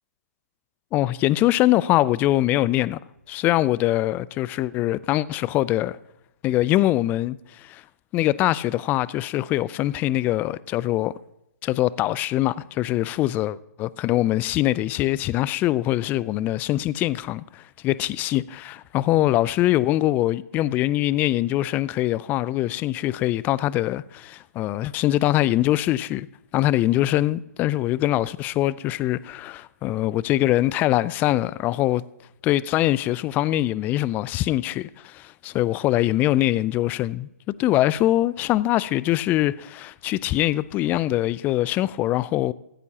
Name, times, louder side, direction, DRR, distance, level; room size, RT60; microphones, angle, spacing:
voice 1, 0.9-3.0 3.3-6.0 6.4-7.8 8.1-11.1 11.6-26.3 26.5-32.0 32.4-37.3 37.6-42.5, left 15 dB, 20° left, 0.4 m, -23 dB
16.0 x 15.0 x 2.9 m
figure-of-eight pair, 130°, 9 cm